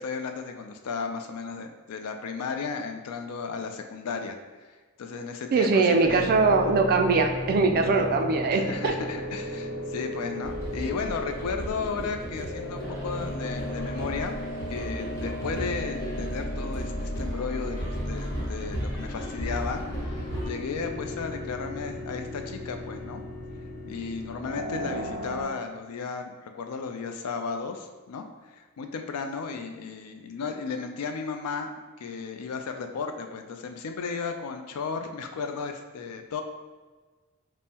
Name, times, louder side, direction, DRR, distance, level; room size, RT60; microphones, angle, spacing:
voice 1, 0.0-4.4 5.0-6.3 8.5-14.4 14.7-23.2 23.8-31.7 32.0-36.4, left 5 dB, 80° left, 6 dB, 0.4 m, -34 dB
voice 2, 5.5-8.9 24.7-25.0, right 4 dB, 45° right, 4 dB, 0.3 m, -22 dB
sound 1, 6.0-25.4, left 1 dB, 40° left, 1.5 m, -35 dB
sound 2, 10.4-20.5, equal, 15° left, 1.1 m, -36 dB
5.3 x 2.1 x 2.8 m, 1.3 s
head